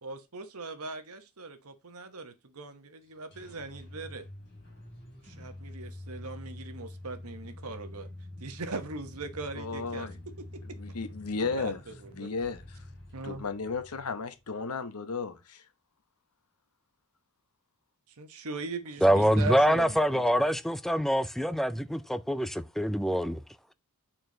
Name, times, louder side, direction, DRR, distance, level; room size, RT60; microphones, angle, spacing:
voice 1, 0.0-4.3 5.2-8.1 8.4-10.1 10.4-10.5 11.4-12.3 13.1-13.4 18.2-20.3, right 3 dB, 70° right, 1.1 m, -40 dB
sound 1, 3.0-14.7, left 1 dB, 50° left, 4.1 m, -46 dB
voice 2, 9.6-10.2 10.8-11.8 12.1-12.6 13.2-15.6, left 4 dB, 80° left, 1.0 m, -34 dB
voice 3, 19.0-23.4, equal, ahead, 0.4 m, -25 dB
8.5 x 4.5 x 3.8 m
head